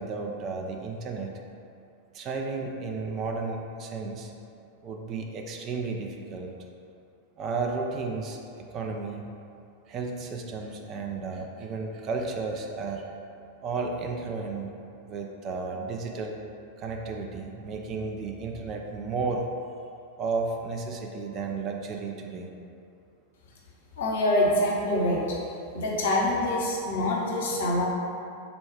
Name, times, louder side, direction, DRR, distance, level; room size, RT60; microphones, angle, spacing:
voice 1, 0.0-1.3 2.1-4.3 4.8-6.5 7.4-8.4 8.7-9.2 9.9-13.0 13.6-14.7 15.0-16.4 16.8-19.5 20.2-22.5, right 4 dB, 30° right, 1 dB, 0.4 m, -33 dB
voice 2, 24.0-25.4 25.7-27.8, left 1 dB, 60° left, -3 dB, 0.8 m, -25 dB
4.0 x 2.3 x 4.6 m, 2.5 s
figure-of-eight pair, 90°, 0 cm